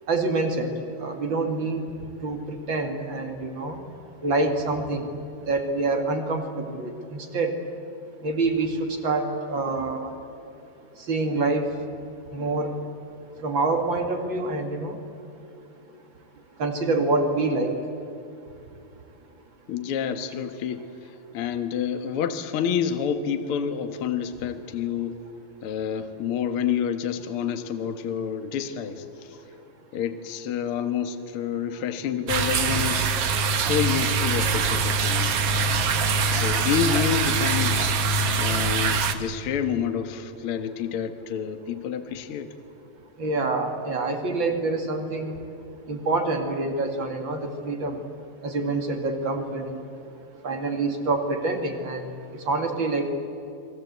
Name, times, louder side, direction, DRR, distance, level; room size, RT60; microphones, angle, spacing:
voice 1, 0.1-0.7 1.0-1.9 2.2-3.8 4.2-5.0 5.5-7.5 8.2-10.1 11.1-11.7 12.3-12.8 13.4-15.0 16.6-17.7 43.2-45.4 45.9-48.0 48.4-49.8 50.4-52.1 52.5-53.1, right 3 dB, 40° right, 5 dB, 2.4 m, -26 dB
voice 2, 19.7-25.2 25.6-29.4 29.9-33.1 33.5-35.7 36.3-37.9 38.4-42.5, left 8 dB, 55° left, 8 dB, 1.7 m, -29 dB
sound 1, 32.3-39.1, right 4 dB, 55° right, 1.8 m, -23 dB
29.5 x 22.0 x 8.1 m, 2.7 s
omnidirectional pair, 4.1 m